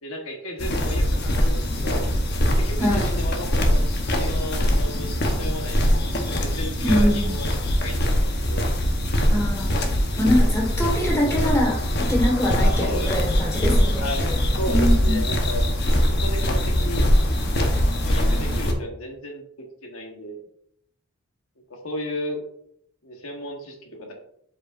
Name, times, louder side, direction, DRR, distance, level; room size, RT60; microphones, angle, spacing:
voice 1, 0.0-2.0 2.6-3.8 4.1-7.4 7.8-8.7 12.6-13.1 14.0-14.2 14.6-15.7 16.1-17.1 18.0-20.4 21.7-22.4 23.0-24.1, equal, 90° left, 2 dB, 1.3 m, -34 dB
sound 1, 0.6-18.7, equal, 55° left, 1.0 m, -22 dB
voice 2, 6.8-7.4 9.3-9.8 10.2-14.4 14.7-15.2, equal, 15° left, -1 dB, 1.5 m, -24 dB
7.8 x 4.9 x 2.5 m, 0.70 s
head